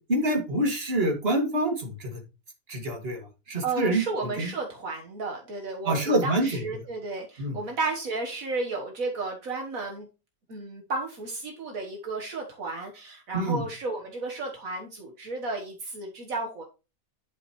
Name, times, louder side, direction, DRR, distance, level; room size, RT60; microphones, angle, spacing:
voice 1, 0.1-2.2 2.7-4.0 4.4-4.5 5.8-6.6 7.4-7.5 13.3-13.6, right 1 dB, 45° right, 2 dB, 2.4 m, -26 dB
voice 2, 3.6-10.1 10.5-16.6, right 3 dB, 70° right, 1 dB, 1.8 m, -33 dB
10.5 x 6.2 x 3.1 m, 0.30 s
omnidirectional pair, 1.5 m